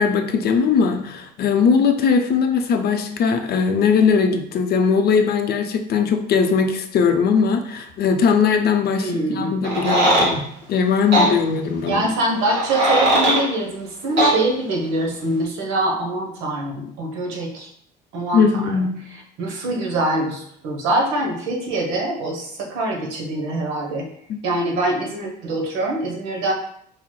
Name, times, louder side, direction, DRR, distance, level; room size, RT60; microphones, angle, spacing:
voice 1, 0.0-12.0 18.3-18.9 24.3-24.4, left 6 dB, 50° left, 6 dB, 0.5 m, -19 dB
voice 2, 9.0-9.5 11.9-17.7 18.1-18.8 19.1-24.1 24.4-26.5, right 1 dB, 75° right, 0 dB, 1.0 m, -24 dB
sound 1, 9.6-10.3 11.1-11.3 12.5-13.4 14.2-14.3, right 1 dB, 60° right, 1.5 m, -17 dB
4.8 x 3.0 x 2.2 m, 0.68 s
supercardioid pair, 70°, 20 cm